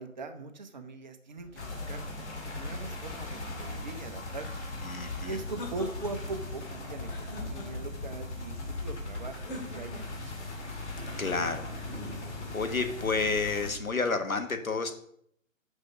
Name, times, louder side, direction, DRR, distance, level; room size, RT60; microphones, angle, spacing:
voice 1, 0.0-2.0 2.5-4.5 5.1-10.6, right 3 dB, 35° right, 7 dB, 0.8 m, -41 dB
sound 1, 1.4-13.9, right 3 dB, 55° right, 1.1 m, -52 dB
sound 2, 1.6-13.7, left 2 dB, 55° left, 2.5 m, -39 dB
voice 2, 4.8-5.4 11.2-11.7 12.5-14.9, left 4 dB, 85° left, 7 dB, 1.3 m, -30 dB
sound 3, 5.0-6.4 7.0-8.1 9.3-10.3 11.7-12.6, left 1 dB, 40° left, 2.5 m, -45 dB
6.3 x 5.2 x 6.2 m, 0.67 s
figure-of-eight pair, 135°, 41 cm